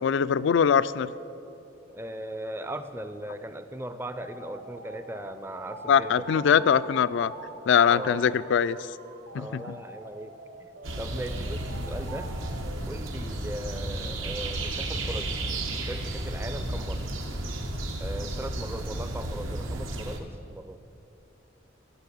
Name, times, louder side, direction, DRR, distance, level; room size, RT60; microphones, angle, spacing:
voice 1, 0.0-1.1 5.9-7.3 7.7-8.8 9.3-9.6, left 7 dB, 65° left, 17 dB, 0.3 m, -22 dB
voice 2, 1.9-6.7 7.8-8.3 9.3-10.7 11.0-12.3 12.9-15.6 15.9-17.1 18.0-20.8, right 1 dB, 10° right, 10 dB, 0.4 m, -38 dB
sound 1, 4.2-12.8, right 3 dB, 60° right, 1.0 m, -45 dB
sound 2, 10.8-20.2, right 1 dB, 85° right, 1.2 m, -33 dB
13.5 x 6.0 x 8.4 m, 2.9 s
head